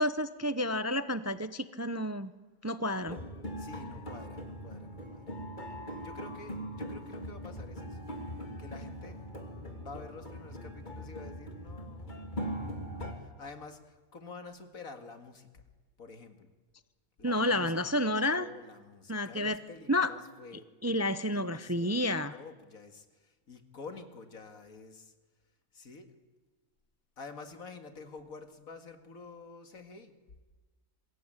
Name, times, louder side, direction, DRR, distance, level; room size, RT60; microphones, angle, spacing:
voice 1, 0.0-2.3 2.6-3.2 17.2-18.5 19.1-19.6 19.9-20.1 20.8-22.4, left 1 dB, 15° right, 13 dB, 0.5 m, -30 dB
sound 1, 3.0-13.1, equal, 35° left, 3.0 m, -41 dB
voice 2, 3.6-5.3 6.0-8.0 8.6-9.2 9.7-12.8 13.2-15.6 16.0-16.5 17.2-20.7 21.3-22.1 22.3-25.1 25.7-26.1 27.2-30.1, left 4 dB, 75° left, 7 dB, 2.5 m, -49 dB
26.5 x 21.5 x 9.0 m, 1.3 s
omnidirectional pair, 1.5 m